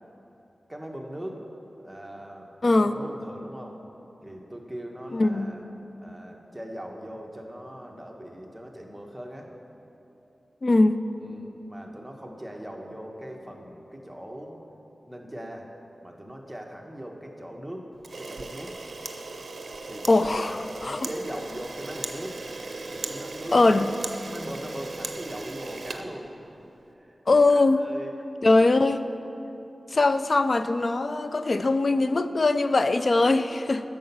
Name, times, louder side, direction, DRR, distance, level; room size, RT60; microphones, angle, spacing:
voice 1, 0.7-1.4 1.8-3.8 4.2-5.6 6.0-9.5 11.2-14.6 15.1-15.7 16.0-17.9 18.2-18.8 19.9-22.4 22.9-23.9 24.2-26.3 26.9-27.2 27.5-28.1 33.2-33.7, equal, 10° right, 1 dB, 1.1 m, -40 dB
voice 2, 5.1-5.5 10.6-11.0 20.1-20.6 20.8-21.0 23.5-23.9 27.3-27.8 28.4-29.0 29.9-33.8, left 2 dB, 55° left, 11 dB, 0.3 m, -21 dB
Camera, 18.0-26.7, right 3 dB, 65° right, 0.6 m, -37 dB
8.7 x 6.8 x 5.5 m, 2.9 s
wide cardioid pair, 65°, 0 cm